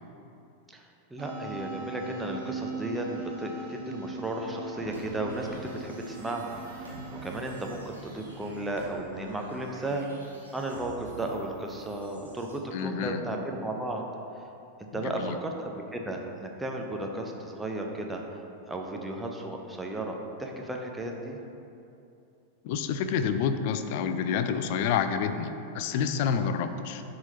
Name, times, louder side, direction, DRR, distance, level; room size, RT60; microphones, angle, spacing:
voice 1, 0.7-6.9 7.2-10.0 10.5-14.0 14.8-18.2 18.7-21.4, right 1 dB, 10° right, 1 dB, 0.7 m, -34 dB
sound 1, 1.2-7.7, right 3 dB, 45° right, 1.0 m, -40 dB
sound 2, 4.9-12.6, right 2 dB, 85° right, 1.3 m, -48 dB
voice 2, 12.7-13.2 15.0-15.4 22.6-27.0, left 7 dB, 50° left, 9 dB, 0.3 m, -28 dB
10.0 x 3.8 x 2.8 m, 2.7 s
figure-of-eight pair, 90°, 0 cm